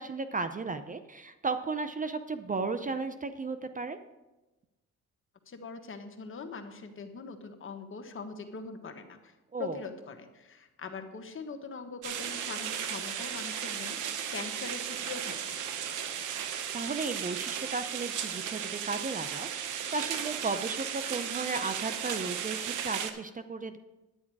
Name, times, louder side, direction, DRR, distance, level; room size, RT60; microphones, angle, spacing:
voice 1, 0.0-4.0 9.5-9.8 16.7-23.8, right 4 dB, 25° right, 10 dB, 0.6 m, -35 dB
voice 2, 5.5-15.6, left 4 dB, 45° left, 6 dB, 1.4 m, -42 dB
sound 1, 12.0-23.1, right 8 dB, 80° right, 1.0 m, -35 dB
9.8 x 9.6 x 4.7 m, 1.1 s
cardioid pair, 90°, 30 cm